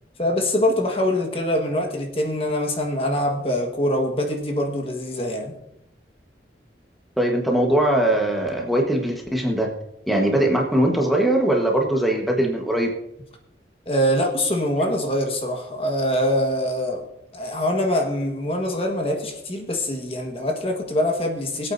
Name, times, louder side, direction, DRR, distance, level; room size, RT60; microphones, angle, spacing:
voice 1, 0.2-5.5 13.8-17.0 17.3-21.7, left 1 dB, 35° left, 2 dB, 1.4 m, -24 dB
voice 2, 7.2-9.7 10.1-12.9, right 1 dB, ahead, 0 dB, 1.2 m, -21 dB
23.5 x 8.5 x 2.7 m, 0.83 s
head